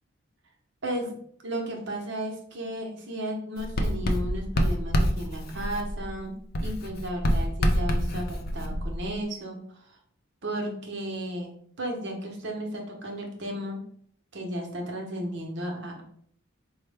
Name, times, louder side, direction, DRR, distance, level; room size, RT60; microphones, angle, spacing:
voice 1, 0.8-1.2 1.4-6.3 6.6-9.6 10.4-11.5 11.8-13.8 14.3-16.0, right 1 dB, 60° right, 1 dB, 0.8 m, -34 dB
Writing, 3.6-6.2 6.5-9.2, equal, 50° left, 0.4 m, -27 dB
4.4 x 2.1 x 3.3 m, 0.64 s
head